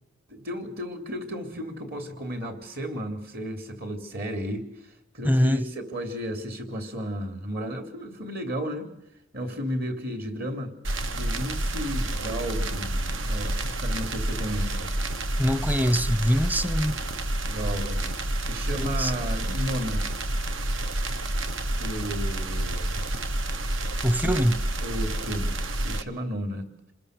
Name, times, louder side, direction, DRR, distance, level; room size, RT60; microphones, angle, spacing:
voice 1, 0.3-8.9 9.3-10.7 11.1-14.9 17.4-18.1 18.4-20.1 21.7-23.1 24.2-26.7, equal, 45° right, 3.3 m, -33 dB
voice 2, 5.2-5.6 15.4-17.0 18.8-19.1 24.0-24.6, equal, 10° right, 0.9 m, -23 dB
sound 1, 10.8-26.0, right 1 dB, 65° right, 1.2 m, -29 dB
27.5 x 21.0 x 6.7 m
head